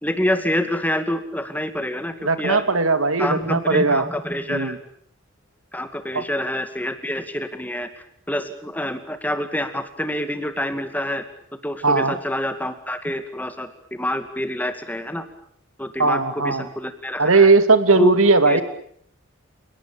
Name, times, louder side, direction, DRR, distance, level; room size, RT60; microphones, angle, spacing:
voice 1, 0.0-2.6 3.2-4.8 5.7-11.2 11.6-15.2 15.8-17.5 18.0-18.1 18.5-18.6, left 1 dB, 10° left, 9 dB, 2.2 m, -27 dB
voice 2, 2.2-4.0 4.5-4.8 6.1-6.2 11.8-12.1 16.0-16.7 17.2-18.6, right 3 dB, 85° right, 11 dB, 2.3 m, -18 dB
30.0 x 18.5 x 8.6 m, 0.66 s
head